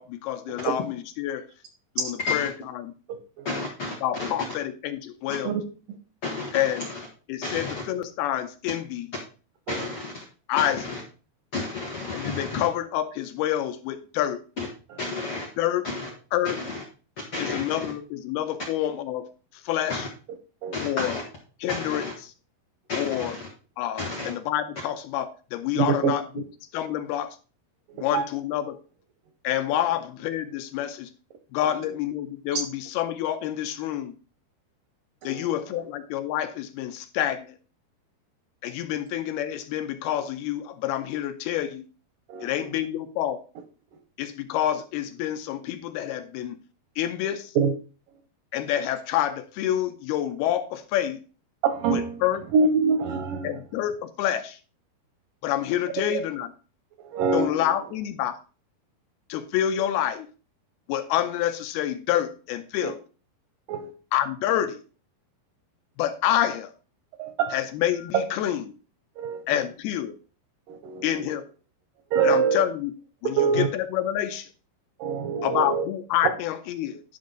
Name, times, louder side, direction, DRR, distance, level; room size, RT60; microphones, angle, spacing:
voice 1, 0.0-1.5 2.0-2.9 4.0-5.6 6.5-6.9 7.3-9.1 10.5-11.0 12.1-14.4 15.6-15.9 16.3-16.6 17.4-19.3 19.7-20.1 20.8-21.1 21.6-22.3 23.0-23.4 23.8-26.5 26.7-27.4 28.0-28.8 29.4-31.1 31.5-34.1 35.2-37.5 38.6-41.9 42.4-43.4 44.2-46.6 47.0-47.5 48.5-51.2 51.9-52.4 53.4-54.6 55.4-56.5 57.3-58.4 59.3-60.3 60.9-63.0 64.1-64.8 66.0-66.7 67.5-68.8 69.5-70.2 71.0-71.5 72.2-72.9 73.2-74.5 75.4-77.0, left 11 dB, 80° left, 2.6 m, -28 dB
voice 2, 3.4-4.3 6.2-7.0 7.4-7.8 9.7-10.2 10.6-11.0 11.5-12.7 14.6-14.7 15.0-15.5 15.8-16.1 16.4-16.8 17.3-17.8 19.9-20.1 20.7-21.2 21.7-22.1 22.9-23.5 24.0-24.3, left 3 dB, 60° left, 1.5 m, -32 dB
voice 3, 25.8-26.1 28.1-28.2 32.5-32.6 35.3-35.5 42.3-42.5 47.6-47.7 51.6-52.1 52.5-53.5 56.1-56.2 57.1-57.5 62.8-62.9 63.7-63.9 67.2-67.6 68.1-68.2 69.2-69.4 70.7-71.1 72.1-72.6 73.4-73.7 75.0-75.8, right 5 dB, 75° right, 2.0 m, -24 dB
10.5 x 5.5 x 3.8 m
omnidirectional pair, 4.6 m